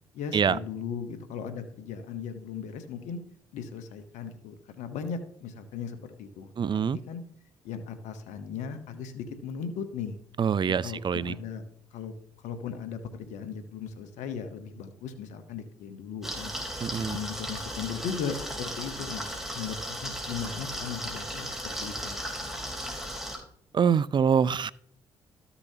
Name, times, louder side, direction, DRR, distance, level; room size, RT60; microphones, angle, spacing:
voice 1, 0.1-3.2 3.5-7.2 7.6-10.2 10.7-11.6 11.9-12.1 12.4-16.5 17.0-19.3 19.5-22.2, left 6 dB, 75° left, 9 dB, 1.0 m, -37 dB
voice 2, 6.6-7.0 10.4-11.3 16.8-17.2 23.7-24.7, right 7 dB, 40° right, 20 dB, 0.4 m, -25 dB
sound 1, 16.2-23.4, equal, 5° right, 3.5 m, -36 dB
13.0 x 6.9 x 2.8 m, 0.64 s
hypercardioid pair, 50°, 12 cm